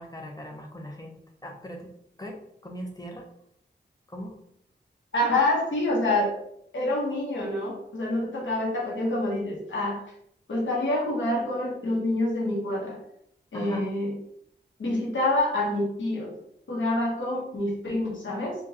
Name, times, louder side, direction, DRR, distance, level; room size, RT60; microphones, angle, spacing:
voice 1, 0.0-1.9 2.2-3.3 4.1-4.4 13.5-13.9, equal, 20° left, 1 dB, 0.9 m, -40 dB
voice 2, 5.1-6.3 6.7-10.0 10.5-13.0 13.5-14.1 14.8-16.3 16.7-18.6, left 1 dB, 90° left, -4 dB, 1.2 m, -27 dB
4.4 x 2.5 x 2.9 m, 0.73 s
wide cardioid pair, 60°, 19 cm